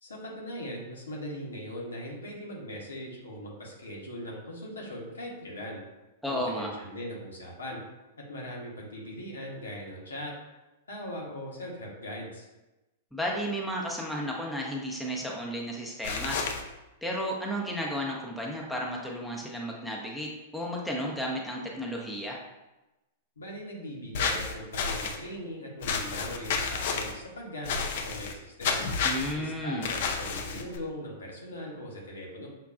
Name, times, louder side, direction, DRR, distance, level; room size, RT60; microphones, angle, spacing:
voice 1, 0.0-5.8 6.2-7.8 8.3-10.3 10.9-12.5 23.4-28.9 29.3-32.5, equal, 80° left, -2 dB, 1.0 m, -40 dB
voice 2, 6.2-6.7 13.1-16.4 17.0-22.4 29.0-29.9, equal, ahead, -3 dB, 0.7 m, -33 dB
sound 1, 16.0-16.6 24.1-25.2 25.8-27.1 27.6-28.3 28.6-29.3 29.8-30.8, left 5 dB, 55° left, 0.4 m, -30 dB
5.7 x 2.3 x 2.4 m, 1.0 s
figure-of-eight pair, 100°, 0 cm